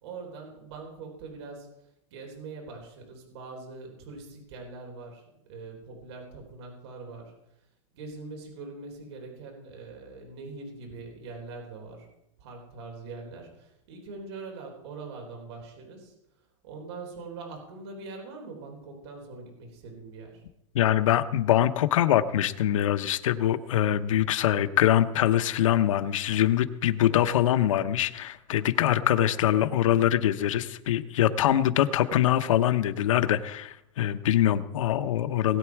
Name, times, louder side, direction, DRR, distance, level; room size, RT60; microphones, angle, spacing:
voice 1, 0.0-1.7 2.1-7.3 7.9-12.1 12.4-16.1 16.6-20.4, right 3 dB, 55° right, 1 dB, 3.9 m, -42 dB
voice 2, 20.7-35.6, left 11 dB, 85° left, 10 dB, 1.0 m, -24 dB
20.0 x 8.8 x 4.8 m, 0.83 s
supercardioid pair, 175°, 16 cm